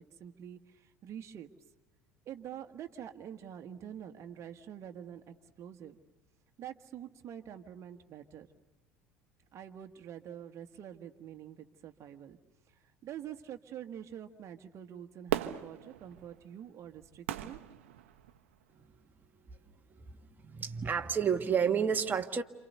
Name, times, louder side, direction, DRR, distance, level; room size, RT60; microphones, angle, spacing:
voice 1, 0.0-1.5 2.2-6.0 6.6-8.5 9.5-12.4 12.7-17.6, right 9 dB, 45° right, 6 dB, 1.6 m, -46 dB
Fireworks, 15.3-18.6 19.2-19.3, right 12 dB, 75° right, 1.0 m, -38 dB
voice 2, 20.4-22.4, right 7 dB, 25° right, 5 dB, 1.5 m, -30 dB
28.5 x 28.0 x 6.8 m, 0.98 s
hypercardioid pair, 65°, 7 cm